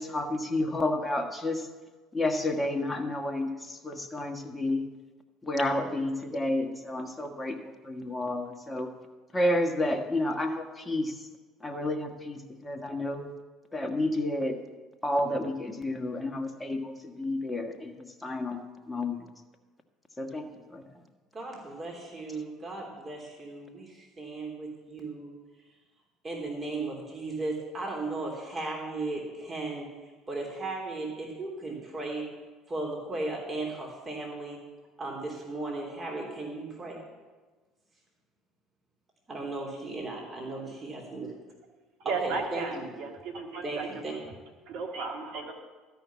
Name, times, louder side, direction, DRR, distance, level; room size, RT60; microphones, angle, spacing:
voice 1, 0.0-1.7 2.1-4.8 5.4-8.9 9.3-11.3 11.6-13.3 13.7-14.6 15.0-18.6 18.9-19.3 20.2-20.8, left 1 dB, 15° left, 4 dB, 1.6 m, -30 dB
voice 2, 21.3-25.4 26.2-29.9 30.3-32.3 32.7-34.6 35.0-37.0 39.3-41.3 42.0-42.9 43.6-44.1, right 2 dB, 30° right, -1 dB, 3.2 m, -36 dB
voice 3, 42.1-43.9 44.7-45.5, right 4 dB, 65° right, 2 dB, 1.9 m, -34 dB
13.0 x 5.8 x 8.5 m, 1.3 s
hypercardioid pair, 65°, 0 cm